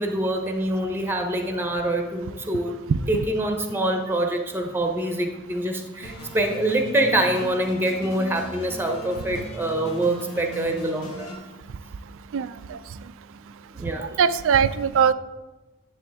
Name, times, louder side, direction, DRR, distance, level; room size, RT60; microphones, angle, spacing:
voice 1, 0.0-2.7 3.1-11.3 13.7-14.1, right 1 dB, 10° right, 4 dB, 0.9 m, -25 dB
sound 1, 6.0-11.4, equal, 65° left, 1.6 m, -38 dB
voice 2, 12.3-12.8 14.2-15.1, right 7 dB, 60° right, 14 dB, 0.4 m, -20 dB
10.5 x 6.9 x 3.5 m, 1.2 s
head